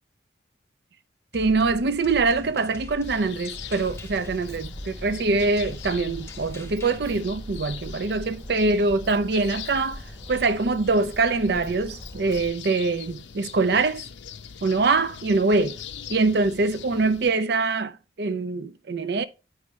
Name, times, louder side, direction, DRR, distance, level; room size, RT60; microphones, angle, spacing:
sound 1, 1.3-7.0, left 1 dB, 15° left, 0.6 m, -43 dB
voice 1, 1.3-10.0 10.3-14.0 14.6-15.7 16.1-19.2, right 3 dB, 60° right, 0.5 m, -24 dB
sound 2, 3.0-17.3, left 8 dB, 80° left, 0.6 m, -42 dB
Walk footsteps, 3.5-12.5, equal, 15° right, 1.2 m, -41 dB
9.6 x 4.9 x 3.0 m
head